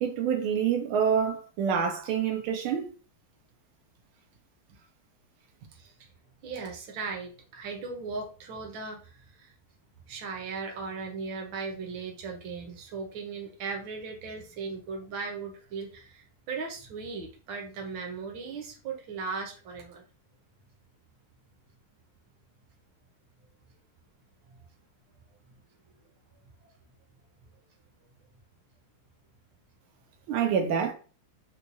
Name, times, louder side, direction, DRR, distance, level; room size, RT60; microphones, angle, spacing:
voice 1, 0.0-2.9 30.3-30.9, right 7 dB, 90° right, 1.5 m, -27 dB
voice 2, 6.4-9.5 10.1-20.0 24.5-24.6 26.6-26.7, right 4 dB, 70° right, 1.5 m, -38 dB
4.4 x 2.3 x 2.6 m
omnidirectional pair, 2.2 m